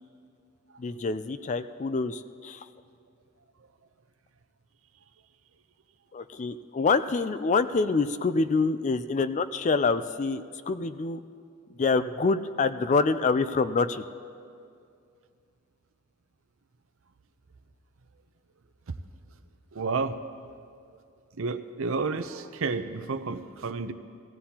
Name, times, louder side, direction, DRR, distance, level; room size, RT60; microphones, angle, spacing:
voice 1, 0.8-2.6 6.1-11.2 11.8-14.0, left 4 dB, 35° left, 12 dB, 0.4 m, -26 dB
voice 2, 19.7-20.2 21.4-23.9, right 4 dB, 65° right, 10 dB, 0.6 m, -30 dB
17.5 x 15.5 x 2.9 m, 2.4 s
head